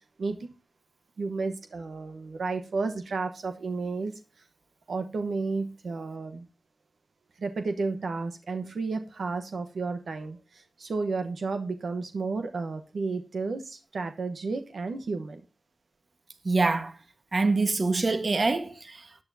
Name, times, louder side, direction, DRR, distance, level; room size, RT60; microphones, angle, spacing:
voice 1, 0.2-0.5 1.2-4.4 4.9-6.5 7.4-15.4, right 4 dB, 90° right, 1.1 m, -32 dB
voice 2, 16.4-16.9 17.3-19.0, right 3 dB, 55° right, 1.4 m, -25 dB
13.0 x 9.7 x 2.7 m
cardioid pair, 50°, 0 cm